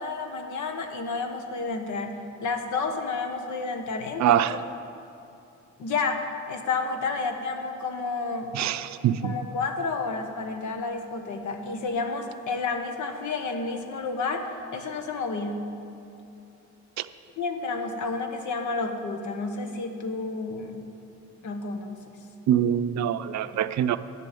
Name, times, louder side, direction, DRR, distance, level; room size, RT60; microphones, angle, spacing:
voice 1, 0.0-4.5 5.8-8.5 9.2-15.7 17.4-20.9 21.4-22.1, left 4 dB, 75° left, 5 dB, 1.3 m, -30 dB
voice 2, 4.2-4.6 8.5-9.3 22.5-24.0, right 11 dB, 65° right, 12 dB, 0.5 m, -24 dB
10.5 x 7.0 x 8.4 m, 2.7 s
cardioid pair, 90°, 30 cm